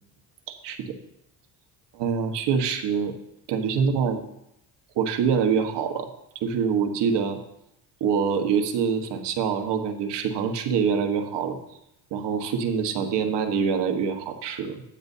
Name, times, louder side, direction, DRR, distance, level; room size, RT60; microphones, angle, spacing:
voice 1, 0.5-0.9 1.9-3.1 3.5-4.2 4.9-6.1 6.4-7.4 8.0-11.6 12.1-14.8, right 6 dB, 70° right, 5 dB, 1.5 m, -25 dB
12.0 x 9.7 x 2.8 m, 0.80 s
supercardioid pair, 85°, 44 cm